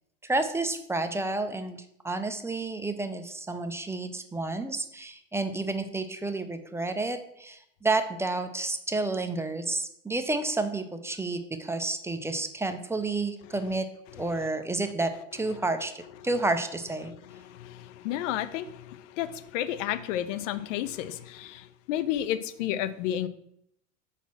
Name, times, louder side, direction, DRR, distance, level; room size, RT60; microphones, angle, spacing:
voice 1, 0.2-1.8 2.0-13.9 14.1-17.1, right 2 dB, 5° right, 7 dB, 0.5 m, -30 dB
voice 2, 17.1-23.3, left 12 dB, 65° left, 14 dB, 0.7 m, -32 dB
5.4 x 4.1 x 6.0 m, 0.73 s
hypercardioid pair, 90°, 41 cm